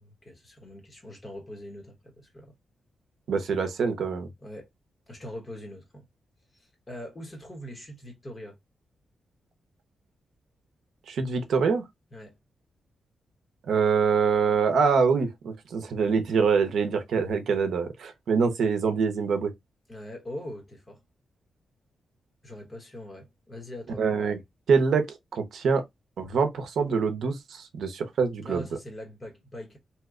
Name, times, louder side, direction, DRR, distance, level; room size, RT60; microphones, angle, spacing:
voice 1, 0.0-2.5 4.4-4.7 5.1-6.0 6.5-8.6 12.1-12.4 19.9-21.0 22.4-24.0 28.4-29.8, equal, 20° left, 1.0 m, -42 dB
voice 2, 3.3-4.3 11.1-11.8 13.7-19.5 24.0-24.4 24.7-25.8 26.2-28.6, right 5 dB, 70° right, 0.6 m, -25 dB
2.8 x 2.1 x 3.5 m
wide cardioid pair, 175°, 0 cm